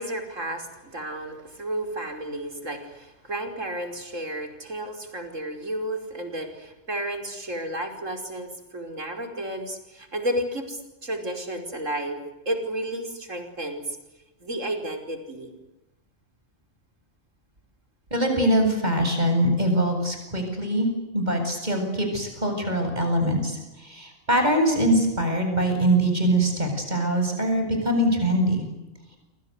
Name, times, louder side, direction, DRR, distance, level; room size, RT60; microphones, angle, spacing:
voice 1, 0.0-12.2 12.5-14.0 14.4-15.5, right 1 dB, 85° right, 6 dB, 5.5 m, -32 dB
voice 2, 18.1-20.9 21.1-28.6, right 1 dB, 35° right, 4 dB, 8.2 m, -23 dB
28.0 x 26.0 x 8.2 m, 1.0 s
omnidirectional pair, 1.3 m